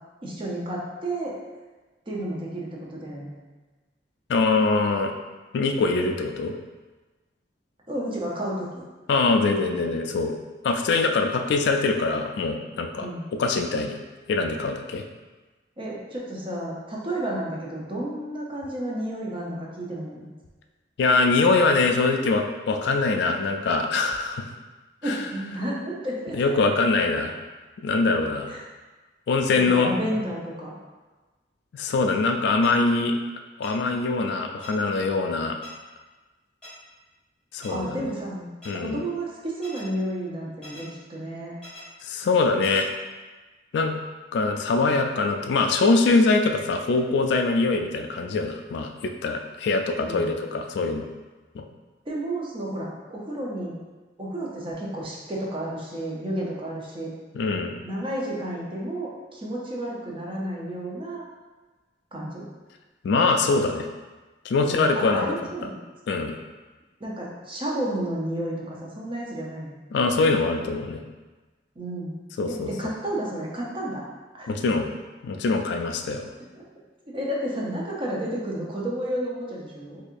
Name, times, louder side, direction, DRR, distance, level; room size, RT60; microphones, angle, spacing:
voice 1, 0.2-1.4 2.1-3.4 7.9-8.7 13.0-13.3 15.8-20.3 25.0-26.4 28.5-28.6 29.5-30.7 37.7-38.5 38.8-41.5 50.0-50.4 52.1-53.8 54.2-57.1 57.8-61.2 62.1-62.5 64.6-65.7 67.0-69.7 71.8-72.2 72.5-74.0 74.3-74.5 76.5-76.6 77.1-80.0, right 1 dB, 30° right, -4 dB, 0.6 m, -31 dB
voice 2, 4.3-5.1 5.5-6.5 9.1-10.3 10.6-13.1 13.4-14.0 14.3-15.0 21.0-24.4 25.0-25.2 26.3-27.3 27.8-28.5 29.3-29.9 31.7-33.1 33.6-35.6 37.5-38.1 38.7-39.0 42.0-42.9 43.7-44.0 44.3-51.1 51.5-51.7 57.3-57.8 63.0-63.9 64.4-65.3 66.1-66.3 69.9-71.0 72.4-72.7 74.5-74.9 75.2-76.3, left 3 dB, 65° left, 5 dB, 0.3 m, -23 dB
sound 1, 32.6-32.7 33.6-33.7 34.6-34.7 35.6-35.7 36.6-36.7 37.6-37.7 38.6-38.7 39.6-39.8 40.6-40.8 41.6-41.8 42.6-42.8, left 1 dB, 5° left, 1.4 m, -43 dB
4.0 x 2.8 x 2.5 m, 1.2 s
head